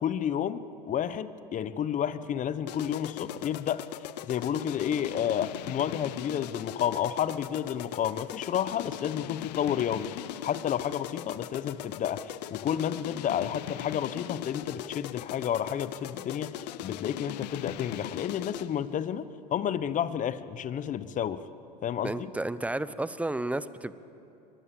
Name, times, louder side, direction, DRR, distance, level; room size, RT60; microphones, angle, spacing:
voice 1, 0.0-3.8 4.3-21.4 21.8-22.3, left 9 dB, 40° left, 15 dB, 1.1 m, -31 dB
sound 1, 2.7-18.8, left 15 dB, 80° left, 0.6 m, -39 dB
voice 2, 22.0-23.9, right 2 dB, 5° right, 14 dB, 0.9 m, -32 dB
24.0 x 19.5 x 8.7 m, 2.8 s
hypercardioid pair, 95°, 21 cm